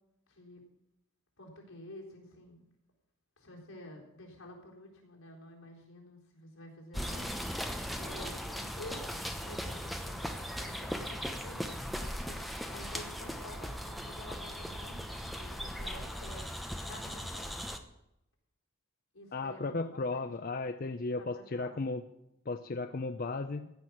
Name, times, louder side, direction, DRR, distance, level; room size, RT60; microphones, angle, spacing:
voice 1, 0.3-0.6 1.4-2.6 3.4-16.5 16.8-17.6 19.1-20.3 21.2-21.9, left 1 dB, 85° left, -1 dB, 3.9 m, -50 dB
sound 1, 6.9-17.8, equal, ahead, 0.8 m, -38 dB
voice 2, 19.3-22.0 22.5-23.7, left 3 dB, 45° left, 8 dB, 0.5 m, -35 dB
15.5 x 6.1 x 8.7 m, 0.86 s
head